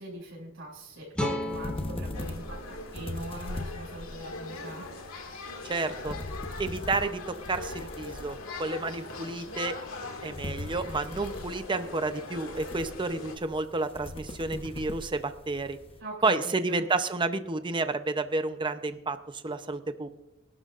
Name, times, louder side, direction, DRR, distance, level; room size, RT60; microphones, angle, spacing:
voice 1, 0.0-4.9 16.0-16.9, right 1 dB, 70° right, -4 dB, 6.1 m, -41 dB
sound 1, 1.1-4.3, left 1 dB, 5° left, 1.7 m, -37 dB
sound 2, 1.5-16.0, left 1 dB, 25° left, 1.0 m, -42 dB
sound 3, 2.1-13.4, left 2 dB, 75° left, 2.1 m, -41 dB
voice 2, 5.7-6.2 6.6-9.8 10.2-15.8 16.2-20.1, right 3 dB, 25° right, 9 dB, 0.7 m, -30 dB
25.0 x 12.0 x 2.5 m, 0.94 s
head